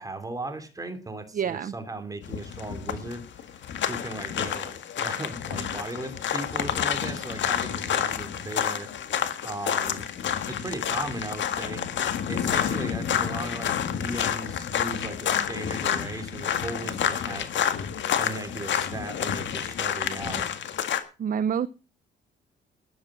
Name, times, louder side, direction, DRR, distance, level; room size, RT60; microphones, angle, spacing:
voice 1, 0.0-8.9 9.4-10.0 10.4-11.9 12.2-17.7 18.1-20.5, right 2 dB, 15° right, 3.1 m, -37 dB
voice 2, 1.3-1.7 21.2-21.7, right 8 dB, 45° right, 0.7 m, -27 dB
sound 1, 2.2-21.0, left 9 dB, 65° left, 1.8 m, -29 dB
13.0 x 10.5 x 6.2 m
cardioid pair, 90°, 20 cm